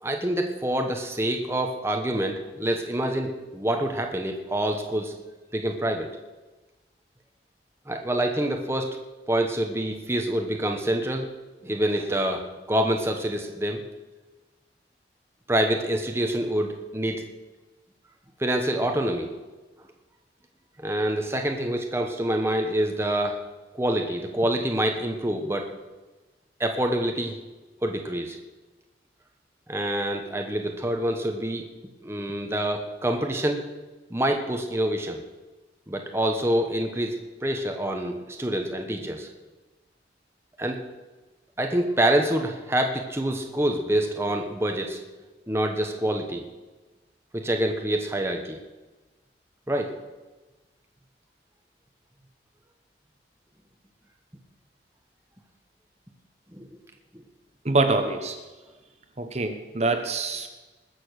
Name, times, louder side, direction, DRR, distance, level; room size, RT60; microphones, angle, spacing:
voice 1, 0.0-5.1 5.5-6.1 7.9-9.0 9.3-11.3 11.6-13.8 15.5-17.2 18.4-19.3 20.8-23.4 23.7-25.7 26.6-27.3 27.8-28.4 29.7-31.6 32.0-33.6 34.1-35.2 35.9-39.3 40.6-40.8 41.6-45.0 45.5-46.4 47.3-48.6 49.7-49.9 56.5-56.7 57.1-57.2, right 1 dB, 15° right, 3 dB, 1.1 m, -26 dB
voice 2, 57.6-58.4 59.2-60.5, right 3 dB, 35° right, 6 dB, 1.1 m, -25 dB
20.5 x 6.9 x 6.5 m, 1.2 s
head